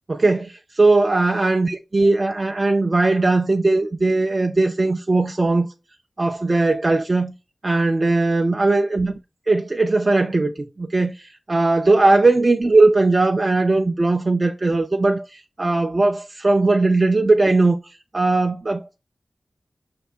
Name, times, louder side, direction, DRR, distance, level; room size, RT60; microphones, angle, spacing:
voice 1, 0.1-5.7 6.2-7.3 7.6-9.2 9.5-19.0, right 2 dB, 40° right, 0.5 m, -19 dB
5.3 x 2.8 x 3.4 m
cardioid pair, 55°, 0 cm